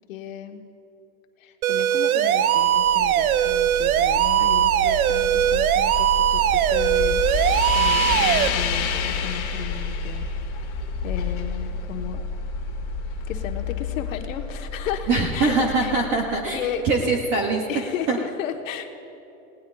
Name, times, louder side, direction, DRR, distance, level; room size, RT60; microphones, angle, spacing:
voice 1, 0.1-0.6 1.4-10.2 10.7-12.3 13.3-15.5 15.8-15.9 16.5-16.9 17.7-19.0, left 9 dB, 65° left, 4 dB, 1.2 m, -34 dB
sound 1, 1.6-8.5, right 11 dB, 80° right, 0.7 m, -20 dB
sound 2, 2.6-16.8, left 5 dB, 30° left, 1.6 m, -29 dB
voice 2, 15.1-16.6 16.8-17.6 18.1-18.2, right 3 dB, 20° right, 1 dB, 0.5 m, -22 dB
28.5 x 18.0 x 2.4 m, 3.0 s
supercardioid pair, 165°, 42 cm